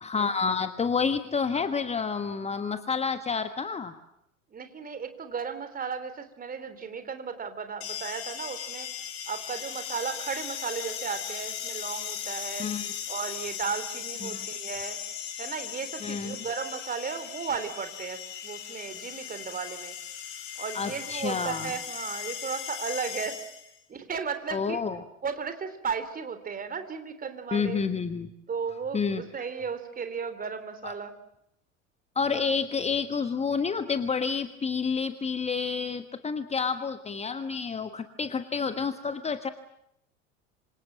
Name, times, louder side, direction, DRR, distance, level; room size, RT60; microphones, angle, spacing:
voice 1, 0.0-3.9 12.6-13.0 14.2-14.5 16.0-16.4 20.7-21.7 24.5-25.0 27.5-28.3 28.9-29.2 30.8-30.9 32.1-39.5, left 5 dB, 15° left, 10 dB, 1.4 m, -29 dB
voice 2, 4.5-8.9 9.3-12.7 13.1-15.0 15.4-20.0 20.6-23.4 23.9-24.8 25.2-27.8 28.5-31.2, right 6 dB, 20° right, 9 dB, 3.6 m, -35 dB
sound 1, 7.8-23.8, left 9 dB, 45° left, 6.1 m, -38 dB
27.0 x 26.5 x 7.6 m, 0.79 s
figure-of-eight pair, 80°, 39 cm